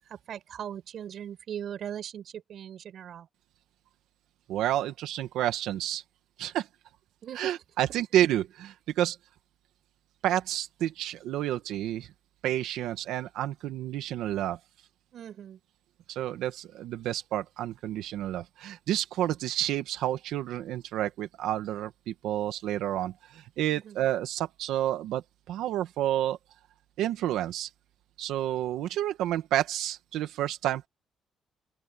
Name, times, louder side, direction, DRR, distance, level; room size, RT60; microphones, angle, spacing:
voice 1, 0.1-3.3 7.2-7.6 15.1-15.6 23.7-24.0, right 9 dB, 65° right, 6.9 m, -39 dB
voice 2, 4.5-6.0 6.4-6.7 7.4-9.2 10.2-12.1 12.4-14.6 16.1-26.4 27.0-27.7 28.2-30.9, right 12 dB, 90° right, 1.8 m, -30 dB
open air
cardioid pair, 90°, 0 cm